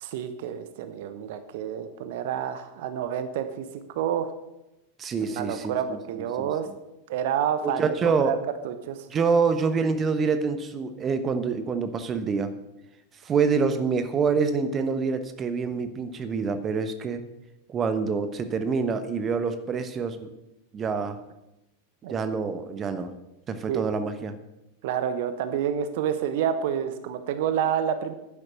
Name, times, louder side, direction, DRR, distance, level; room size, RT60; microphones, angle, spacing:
voice 1, 0.0-3.7 3.9-4.3 5.3-6.7 7.1-8.4 8.6-9.1 22.0-22.1 23.7-23.8 24.8-28.1, right 9 dB, 50° right, 10 dB, 1.0 m, -28 dB
voice 2, 5.0-6.0 6.4-6.5 7.6-8.4 9.1-12.5 13.2-17.2 17.7-20.3 20.7-21.2 22.1-23.1 23.5-24.4, right 5 dB, 25° right, 10 dB, 1.1 m, -26 dB
11.0 x 10.0 x 6.4 m, 0.92 s
figure-of-eight pair, 90°, 0 cm